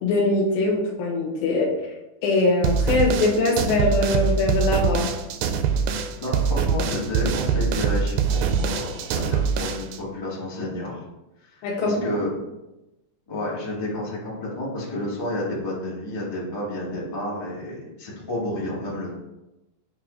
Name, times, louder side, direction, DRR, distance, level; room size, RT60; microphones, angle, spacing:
voice 1, 0.0-1.7 2.2-5.2 11.6-12.1, left 2 dB, 70° left, -1 dB, 2.9 m, -22 dB
sound 1, 2.6-10.0, right 6 dB, 80° right, 2.0 m, -24 dB
voice 2, 6.2-11.0 11.4-12.3 13.3-19.1, left 1 dB, 40° left, -7 dB, 0.3 m, -30 dB
7.7 x 2.8 x 5.0 m, 0.98 s
omnidirectional pair, 4.3 m